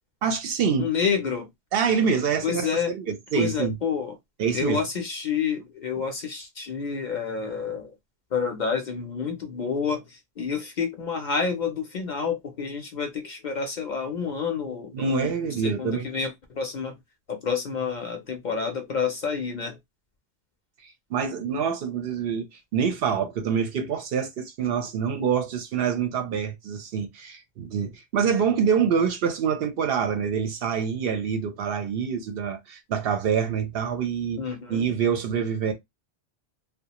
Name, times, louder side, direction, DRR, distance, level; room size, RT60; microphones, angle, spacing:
voice 1, 0.2-0.9 1.7-3.7 4.4-4.8 14.9-16.1 21.1-34.4 34.7-35.7, right 6 dB, 65° right, 0.7 m, -26 dB
voice 2, 0.8-1.5 2.4-2.9 3.3-4.1 4.5-7.9 8.3-15.3 15.6-17.0 17.3-19.8 34.4-34.9, left 6 dB, 55° left, 0.6 m, -29 dB
2.3 x 2.1 x 2.8 m
omnidirectional pair, 1.1 m